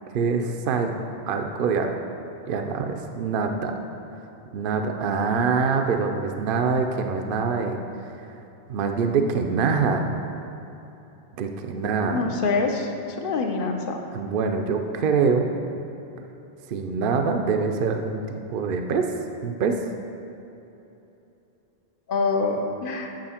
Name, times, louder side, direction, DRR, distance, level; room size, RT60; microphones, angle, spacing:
voice 1, 0.1-0.9 1.3-1.9 2.5-3.7 4.5-7.8 8.7-10.1 11.4-12.4 14.1-15.5 16.7-19.1 19.4-19.8, right 5 dB, 60° right, 4 dB, 0.7 m, -24 dB
voice 2, 11.8-12.9 13.2-14.0 22.1-23.1, left 4 dB, 60° left, 3 dB, 0.9 m, -25 dB
8.8 x 6.2 x 4.3 m, 3.0 s
omnidirectional pair, 1.1 m